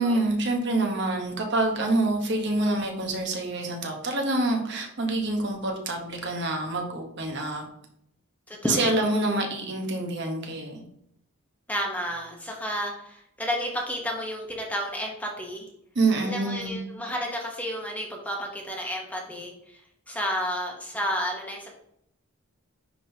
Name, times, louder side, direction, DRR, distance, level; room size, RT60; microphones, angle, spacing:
voice 1, 0.0-7.6 8.7-10.8 15.9-16.8, right 2 dB, 50° right, 2 dB, 1.2 m, -26 dB
voice 2, 8.5-9.1 11.7-15.7 16.2-19.8 20.1-21.8, equal, 5° left, 0 dB, 1.0 m, -31 dB
9.9 x 3.8 x 2.8 m, 0.73 s
head